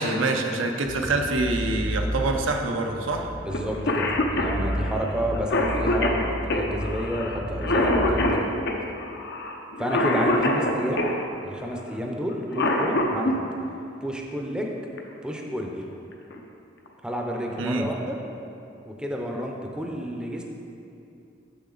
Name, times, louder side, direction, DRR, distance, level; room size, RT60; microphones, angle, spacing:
voice 1, 0.0-3.3 17.6-17.9, right 2 dB, 85° right, 3 dB, 0.6 m, -25 dB
sound 1, 0.8-8.3, equal, 50° right, 0.7 m, -33 dB
voice 2, 3.4-8.4 9.8-11.1 11.4-13.4 14.0-14.7 15.2-15.8 17.0-18.2 18.8-20.4, equal, 5° right, 0 dB, 0.6 m, -30 dB
Cough, 3.5-3.6 3.9-11.2 12.3-13.4 15.0-15.1 16.1-16.4 16.9-17.0 17.3-17.8, left 1 dB, 60° left, 0.7 m, -25 dB
6.9 x 6.6 x 3.9 m, 2.7 s
head